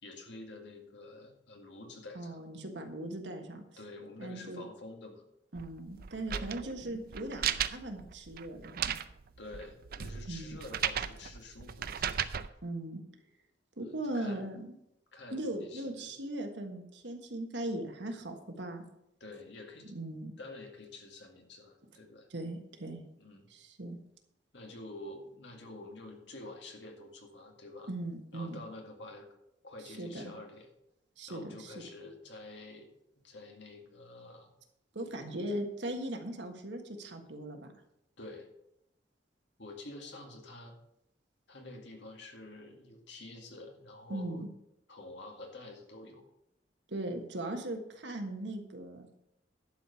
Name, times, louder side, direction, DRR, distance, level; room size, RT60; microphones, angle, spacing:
voice 1, 0.0-2.4 3.8-5.2 6.3-6.8 9.4-12.3 14.1-14.4 15.1-16.1 19.2-19.9 20.4-22.3 23.2-23.5 24.5-27.9 28.3-29.3 29.6-30.7 31.3-32.9 33.2-34.5 38.2-38.5 39.6-40.8 41.5-44.4 44.9-46.2, left 2 dB, 70° left, 2 dB, 2.1 m, -48 dB
voice 2, 2.1-3.6 4.2-4.6 5.5-8.9 10.3-10.6 12.6-13.0 13.8-14.8 15.3-18.8 19.8-20.3 22.3-23.1 23.5-24.0 27.9-28.6 29.8-30.3 31.2-31.8 34.9-37.7 44.1-44.5 46.9-49.1, right 1 dB, 70° right, 4 dB, 1.5 m, -39 dB
sound 1, 5.5-12.5, right 9 dB, 55° right, 0.5 m, -36 dB
11.5 x 5.0 x 6.9 m, 0.81 s
head